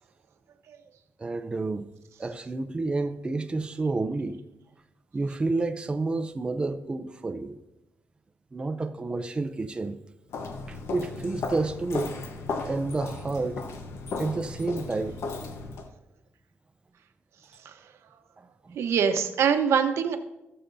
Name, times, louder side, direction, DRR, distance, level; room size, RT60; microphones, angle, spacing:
voice 1, 1.2-1.9 2.2-4.4 5.1-7.6 8.5-10.0 10.7-12.1 12.6-13.6 14.2-15.2 18.4-18.8, right 3 dB, 20° right, 7 dB, 0.5 m, -30 dB
Walk footsteps, 10.3-15.9, left 4 dB, 70° left, 1.0 m, -35 dB
voice 2, 18.7-20.2, right 7 dB, 75° right, 7 dB, 0.9 m, -24 dB
18.0 x 6.7 x 2.6 m, 0.96 s
cardioid pair, 135°, 5 cm